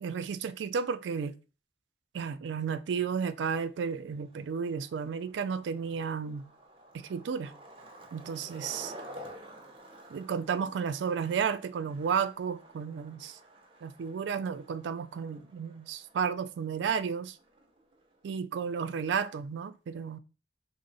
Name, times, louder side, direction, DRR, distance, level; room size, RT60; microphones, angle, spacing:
voice 1, 0.0-1.3 2.1-6.4 7.1-7.5 8.1-8.9 10.1-13.4 13.8-17.3 18.2-20.2, right 6 dB, 90° right, 0.3 m, -32 dB
Skateboard, 3.3-18.3, right 1 dB, 30° right, 0.6 m, -52 dB
3.6 x 2.1 x 3.9 m
head